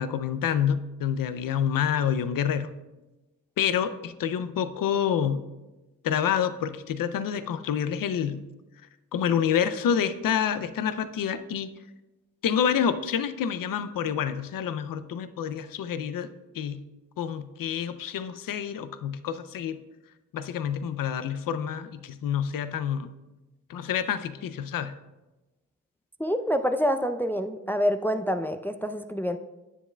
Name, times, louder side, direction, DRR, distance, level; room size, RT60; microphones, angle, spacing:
voice 1, 0.0-2.7 3.6-5.4 6.0-8.5 9.1-11.7 12.4-16.8 17.2-19.8 20.3-23.1 23.7-24.9, left 8 dB, 90° left, 12 dB, 0.5 m, -28 dB
voice 2, 26.2-29.4, equal, 5° left, 9 dB, 0.4 m, -27 dB
9.9 x 7.2 x 2.2 m, 1.1 s
cardioid pair, 55°, 33 cm